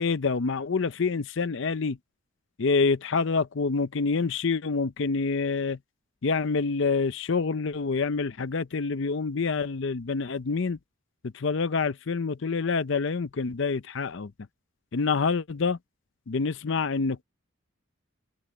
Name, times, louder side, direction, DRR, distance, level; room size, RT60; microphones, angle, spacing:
voice 1, 0.0-2.0 2.6-5.8 6.2-10.8 11.3-14.3 14.9-15.8 16.3-17.2, left 4 dB, 55° left, 0.5 m, -27 dB
head